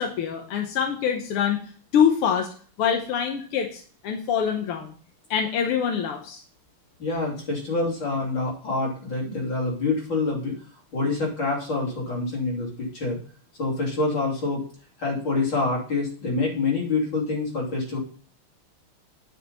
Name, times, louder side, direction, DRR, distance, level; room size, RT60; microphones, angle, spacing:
voice 1, 0.0-1.6 1.9-2.5 2.8-4.9 5.3-6.4, left 8 dB, 90° left, 3 dB, 1.9 m, -24 dB
voice 2, 7.0-10.6 10.9-13.2 13.6-14.6 15.0-18.0, left 3 dB, 55° left, -3 dB, 3.9 m, -26 dB
9.6 x 5.9 x 5.4 m, 0.43 s
omnidirectional pair, 2.4 m